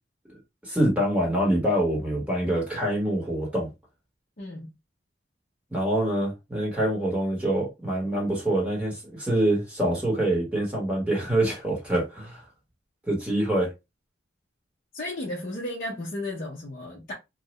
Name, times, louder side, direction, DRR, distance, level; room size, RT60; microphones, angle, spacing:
voice 1, 0.6-3.7 5.7-12.4 13.1-13.7, right 1 dB, 5° right, 1.4 m, -25 dB
voice 2, 4.4-4.7 14.9-17.1, left 1 dB, 45° left, 0.6 m, -34 dB
2.8 x 2.4 x 3.0 m
head